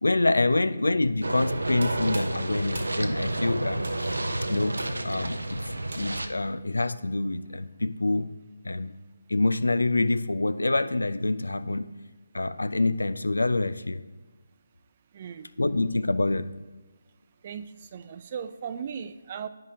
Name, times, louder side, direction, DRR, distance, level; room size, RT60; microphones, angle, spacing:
voice 1, 0.0-5.7 6.0-8.3 8.6-9.0 9.3-11.9 12.3-14.0 15.6-16.6, left 2 dB, 85° left, 13 dB, 0.4 m, -26 dB
sound 1, 1.2-6.3, right 1 dB, 85° right, 0.6 m, -30 dB
sound 2, 1.7-6.4, right 2 dB, 60° right, 1.3 m, -45 dB
voice 2, 15.1-15.5 17.4-17.7 17.9-19.5, right 7 dB, 35° right, 11 dB, 0.4 m, -37 dB
10.5 x 5.2 x 2.8 m, 1.2 s
figure-of-eight pair, 155°, 0 cm